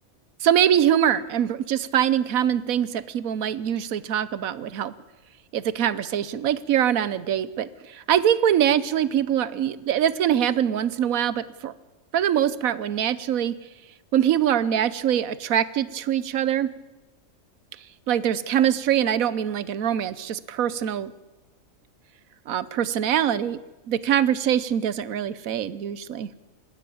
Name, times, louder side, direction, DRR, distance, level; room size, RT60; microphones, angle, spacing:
voice 1, 0.4-4.9 5.5-11.7 12.1-13.6 14.1-16.7 18.1-21.1 22.5-23.6 23.9-26.3, right 10 dB, 85° right, 18 dB, 1.3 m, -23 dB
20.0 x 15.5 x 8.5 m, 1.1 s
omnidirectional pair, 1.4 m